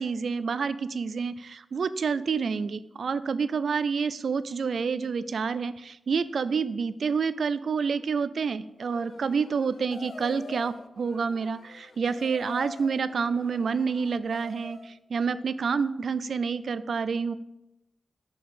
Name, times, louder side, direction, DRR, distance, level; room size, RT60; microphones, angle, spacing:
voice 1, 0.0-17.3, right 5 dB, 60° right, 15 dB, 0.4 m, -28 dB
sound 1, 8.8-15.0, left 4 dB, 45° left, 0.4 m, -46 dB
6.2 x 5.9 x 5.6 m, 0.88 s
wide cardioid pair, 145°, 0 cm